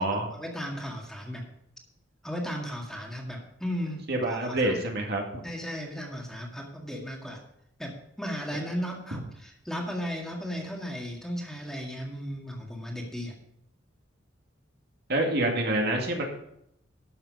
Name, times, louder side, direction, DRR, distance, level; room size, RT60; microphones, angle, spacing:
voice 1, 0.3-1.5 2.2-4.0 4.3-4.8 5.4-7.4 7.8-13.4, equal, 5° left, -1 dB, 2.0 m, -35 dB
voice 2, 4.1-5.2 15.1-16.2, right 1 dB, 55° right, 1 dB, 2.2 m, -26 dB
12.5 x 6.8 x 5.5 m, 0.75 s
head